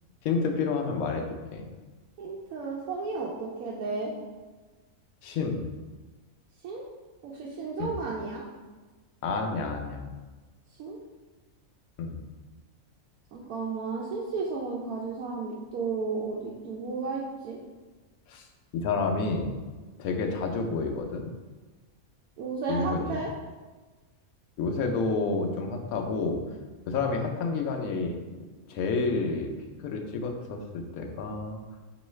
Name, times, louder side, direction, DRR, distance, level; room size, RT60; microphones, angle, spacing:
voice 1, 0.2-1.6 5.2-5.7 7.8-8.0 9.2-10.1 12.0-12.2 18.3-18.4 18.7-19.5 20.0-21.3 22.7-23.2 24.6-26.4 26.9-29.5 29.8-31.6, left 4 dB, 80° left, 3 dB, 1.0 m, -29 dB
voice 2, 2.2-4.1 6.6-6.8 7.2-8.4 10.8-11.0 13.3-17.6 22.4-23.3, right 4 dB, 90° right, -3 dB, 1.1 m, -33 dB
4.5 x 3.1 x 3.1 m, 1.3 s
omnidirectional pair, 1.5 m